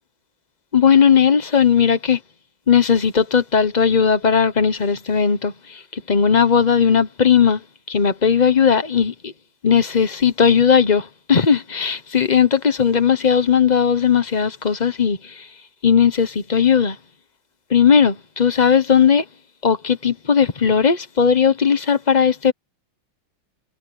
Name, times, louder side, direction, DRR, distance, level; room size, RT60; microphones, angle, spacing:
voice 1, 0.7-2.2 2.7-7.6 7.9-9.3 9.6-15.5 15.8-17.0 17.7-19.2 19.6-22.5, left 7 dB, 35° left, 0.7 m, -17 dB
omnidirectional pair, 2.2 m